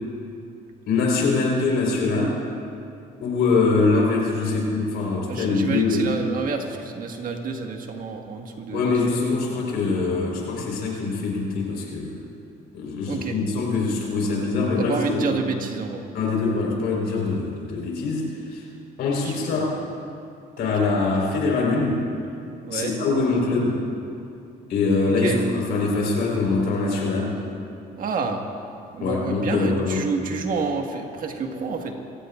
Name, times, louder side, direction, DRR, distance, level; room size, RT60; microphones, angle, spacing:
voice 1, 0.9-2.4 3.2-6.1 8.7-12.2 12.7-15.3 16.1-18.6 19.0-19.8 20.6-22.0 22.7-23.8 24.7-27.4 29.0-30.1, left 3 dB, 75° left, -1 dB, 4.4 m, -23 dB
voice 2, 5.3-9.2 13.1-13.4 14.8-16.0 19.2-19.7 20.6-20.7 22.6-22.9 25.2-25.4 28.0-28.4 28.9-31.9, right 4 dB, 55° right, 2 dB, 1.7 m, -29 dB
25.0 x 16.5 x 2.5 m, 2.6 s
cardioid pair, 110°, 17 cm